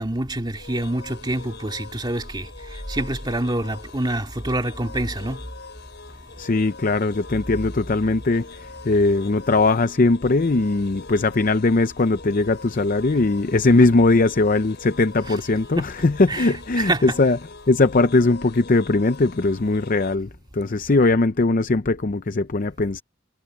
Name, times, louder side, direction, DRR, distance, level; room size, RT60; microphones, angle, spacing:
voice 1, 0.0-5.4 15.2-15.4 15.7-15.9 16.3-17.2, right 1 dB, 20° right, 2.3 m, -27 dB
sound 1, 0.5-20.2, left 4 dB, 60° left, 6.3 m, -43 dB
voice 2, 6.4-17.4 17.7-23.0, left 3 dB, 45° left, 0.6 m, -20 dB
head